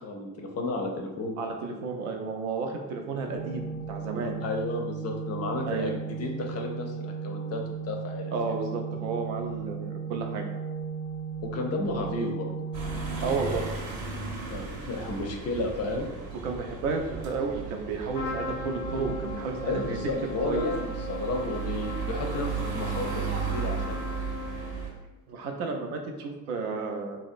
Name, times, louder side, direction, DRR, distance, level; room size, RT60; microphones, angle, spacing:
voice 1, 0.0-1.4 4.4-8.3 11.4-12.5 14.5-16.1 19.6-24.2, left 2 dB, 35° left, 2 dB, 0.4 m, -32 dB
voice 2, 1.4-4.3 5.7-5.9 8.3-10.5 13.2-13.6 16.4-20.0 20.4-20.7 25.3-27.2, right 4 dB, 70° right, 3 dB, 0.5 m, -32 dB
Organ, 3.2-14.1, right 6 dB, 10° right, 0.6 m, -36 dB
sound 1, 12.7-24.9, right 5 dB, 45° right, 0.7 m, -35 dB
Trumpet, 18.1-25.0, left 3 dB, 85° left, 0.6 m, -38 dB
2.7 x 2.0 x 2.5 m, 1.1 s
figure-of-eight pair, 50°, 46 cm